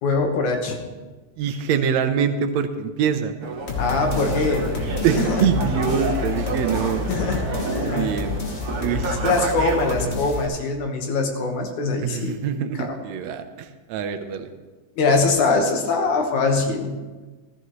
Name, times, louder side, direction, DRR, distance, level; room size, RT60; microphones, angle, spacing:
voice 1, 0.0-0.8 3.8-4.7 5.1-5.4 7.1-7.5 7.8-8.2 9.2-12.4 12.8-12.9 15.0-17.0, left 3 dB, 85° left, 3 dB, 2.8 m, -22 dB
voice 2, 1.4-3.3 5.0-7.1 7.9-8.4 8.8-9.2 12.0-14.5, right 8 dB, 75° right, 9 dB, 1.9 m, -24 dB
sound 1, 3.4-10.1, right 3 dB, 55° right, 1.9 m, -29 dB
sound 2, 3.7-10.5, left 4 dB, 50° left, 0.7 m, -29 dB
14.5 x 14.0 x 3.1 m, 1.3 s
omnidirectional pair, 3.3 m